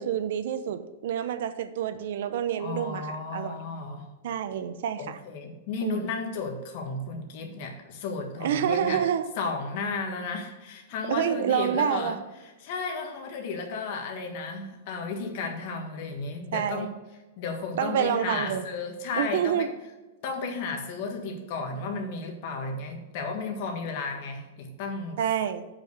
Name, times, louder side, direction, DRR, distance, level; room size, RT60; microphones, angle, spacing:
voice 1, 0.0-3.6 4.2-5.2 5.8-6.1 8.4-9.3 11.1-12.2 16.5-16.9 17.8-18.6 19.1-19.7 25.2-25.6, right 9 dB, 60° right, 0.8 m, -28 dB
voice 2, 2.6-4.1 5.0-9.0 9.4-12.2 12.6-16.9 17.4-19.7 20.2-25.2, left 4 dB, 40° left, 1.5 m, -33 dB
7.4 x 5.4 x 7.0 m
supercardioid pair, 170°, 0 cm